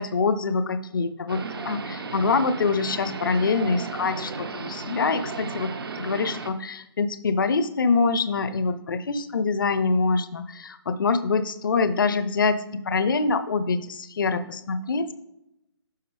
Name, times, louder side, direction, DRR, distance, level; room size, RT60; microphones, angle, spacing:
voice 1, 0.0-5.7 6.0-15.1, left 4 dB, 50° left, 13 dB, 0.6 m, -25 dB
sound 1, 1.3-6.5, right 4 dB, 55° right, 1.0 m, -34 dB
10.5 x 5.7 x 3.3 m, 0.87 s
figure-of-eight pair, 140°, 14 cm